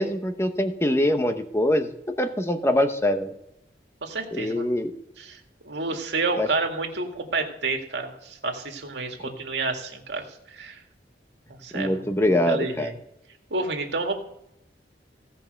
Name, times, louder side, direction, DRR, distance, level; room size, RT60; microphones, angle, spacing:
voice 1, 0.0-3.3 4.3-4.9 6.4-6.5 9.2-9.3 11.7-12.9, left 1 dB, 15° left, 8 dB, 0.9 m, -24 dB
voice 2, 4.0-4.7 5.2-5.4 5.6-10.8 11.6-12.1 12.5-13.0 13.5-14.1, right 3 dB, 85° right, 3 dB, 2.0 m, -29 dB
16.5 x 5.5 x 6.6 m, 0.83 s
head